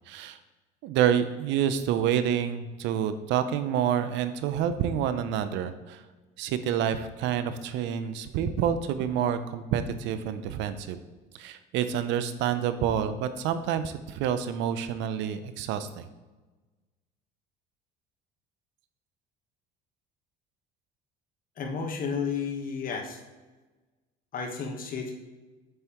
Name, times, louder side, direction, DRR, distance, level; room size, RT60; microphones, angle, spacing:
voice 1, 0.1-0.4 0.8-6.0 6.4-11.0 11.3-16.1, right 9 dB, 70° right, 11 dB, 0.6 m, -28 dB
voice 2, 21.6-23.2 24.3-25.1, left 5 dB, 45° left, 3 dB, 1.2 m, -32 dB
7.8 x 5.5 x 3.0 m, 1.2 s
supercardioid pair, 100°, 20 cm